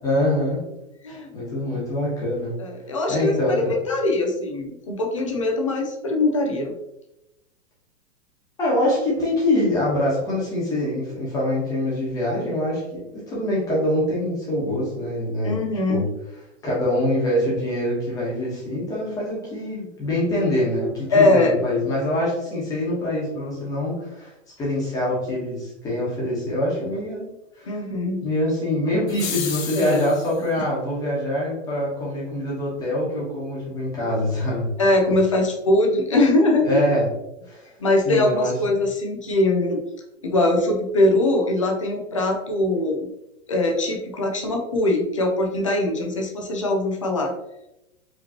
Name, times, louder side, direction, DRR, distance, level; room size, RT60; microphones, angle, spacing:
voice 1, 0.0-0.6 1.1-2.5 3.1-3.7 8.6-15.6 15.9-16.1 16.6-24.3 24.6-27.3 27.6-27.8 28.2-34.7 36.6-37.1 37.4-37.7 38.0-38.5, left 1 dB, 10° left, -6 dB, 1.1 m, -24 dB
voice 2, 2.6-6.7 15.4-16.1 21.1-21.6 27.7-28.2 29.8-30.1 34.8-36.6 37.8-39.8 40.2-43.1 43.5-47.3, left 2 dB, 25° left, 1 dB, 0.3 m, -21 dB
sound 1, 29.1-30.4, left 7 dB, 85° left, 1.0 m, -32 dB
4.9 x 3.0 x 2.8 m, 0.91 s
hypercardioid pair, 170°, 39 cm